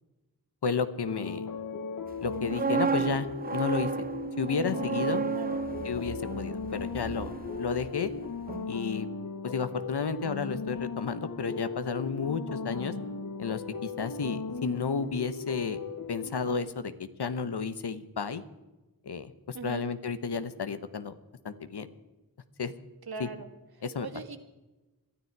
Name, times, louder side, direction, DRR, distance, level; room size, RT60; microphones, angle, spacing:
voice 1, 0.6-1.5 2.2-4.1 4.4-5.2 5.8-8.1 8.7-9.1 9.4-12.9 13.4-15.8 16.1-18.4 19.0-21.1 21.4-21.9 22.6-22.7 23.2-23.3 23.8-24.1, left 5 dB, 80° left, 12 dB, 1.2 m, -32 dB
sound 1, 1.1-16.6, left 4 dB, 50° left, 1.1 m, -37 dB
sound 2, 2.2-8.2 8.5-8.7, right 5 dB, 25° right, 0.4 m, -33 dB
voice 2, 19.5-19.9 23.1-23.5 24.0-24.4, right 5 dB, 70° right, 8 dB, 1.8 m, -40 dB
22.0 x 13.0 x 4.8 m, 1.1 s
wide cardioid pair, 100°, 39 cm